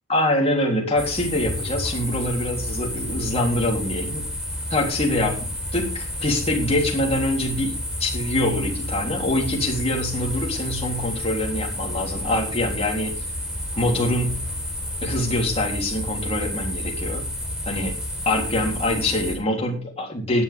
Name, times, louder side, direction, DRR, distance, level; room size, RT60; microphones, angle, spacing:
voice 1, 0.1-4.3 4.7-13.2 13.8-14.4 15.0-17.3 17.7-18.0 18.3-20.4, left 1 dB, 30° left, 0 dB, 3.5 m, -24 dB
sound 1, 1.0-19.4, left 1 dB, 5° right, 4.3 m, -30 dB
16.0 x 10.5 x 3.6 m, 0.35 s
head